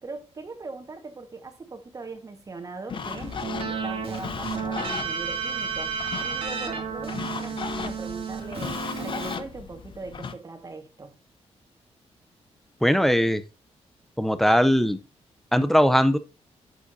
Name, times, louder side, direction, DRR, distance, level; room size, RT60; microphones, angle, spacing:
voice 1, 0.0-3.4 3.7-6.0 6.2-11.2, right 3 dB, 30° right, 1.6 m, -40 dB
sound 1, 2.9-10.4, left 6 dB, 45° left, 0.7 m, -36 dB
Keyboard (musical), 2.9-9.4, right 6 dB, 60° right, 2.1 m, -32 dB
voice 2, 12.8-13.4 14.2-15.0 15.5-16.2, equal, ahead, 0.6 m, -20 dB
9.0 x 7.0 x 2.7 m
wide cardioid pair, 130°, 12 cm